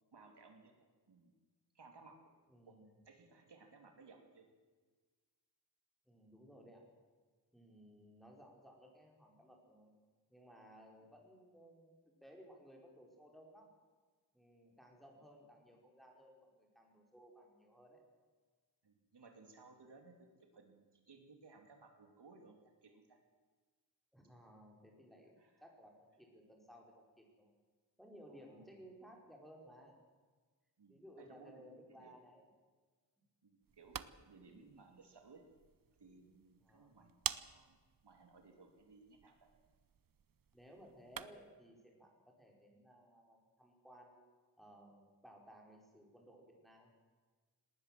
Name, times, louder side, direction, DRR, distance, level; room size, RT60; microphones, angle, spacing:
voice 1, 0.1-0.7 1.1-1.3 1.7-2.2 2.7-2.8 3.0-4.5 11.0-11.1 15.1-15.2 18.8-23.2 25.4-25.5 28.3-28.6 30.8-32.2 33.4-35.4 36.0-37.8 38.0-39.5, right 4 dB, 70° right, 4 dB, 2.9 m, -61 dB
voice 2, 2.5-2.9 6.0-6.9 7.5-9.9 10.3-13.7 14.3-18.0 24.1-27.5 28.0-30.0 30.9-32.4 36.6-37.0 40.5-44.2 44.6-46.9, equal, ahead, 0 dB, 4.9 m, -59 dB
sound 1, 33.6-41.6, right 7 dB, 50° right, 0.8 m, -49 dB
19.5 x 19.0 x 7.6 m, 1.4 s
wide cardioid pair, 125°, 42 cm